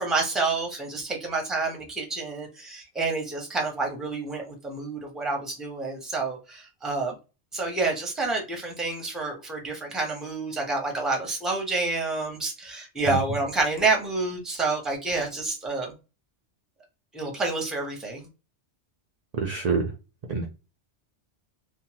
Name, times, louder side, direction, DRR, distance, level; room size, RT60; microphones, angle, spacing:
voice 1, 0.0-7.2 7.5-15.9 17.1-18.3, right 3 dB, ahead, 1 dB, 0.5 m, -28 dB
voice 2, 19.4-19.8 20.3-20.5, right 5 dB, 65° right, 1 dB, 0.4 m, -25 dB
3.0 x 2.2 x 2.8 m, 0.30 s
omnidirectional pair, 1.2 m